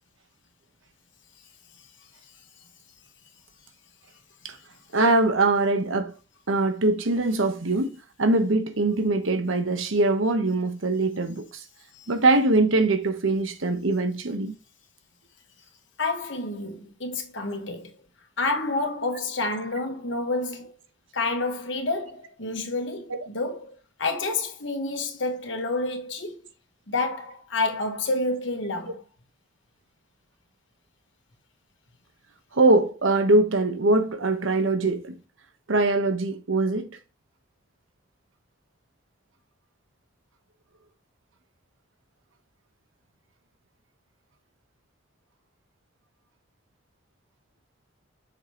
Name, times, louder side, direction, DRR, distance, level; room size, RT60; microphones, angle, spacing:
voice 1, 4.9-6.1 6.5-7.9 8.2-11.6 12.1-14.5 23.1-23.2 32.5-35.2 35.7-36.9, right 2 dB, 80° right, 1.0 m, -22 dB
voice 2, 16.0-17.9 18.4-20.7 21.1-26.5 26.9-29.0, left 2 dB, 70° left, 1.5 m, -29 dB
6.4 x 5.0 x 3.0 m
head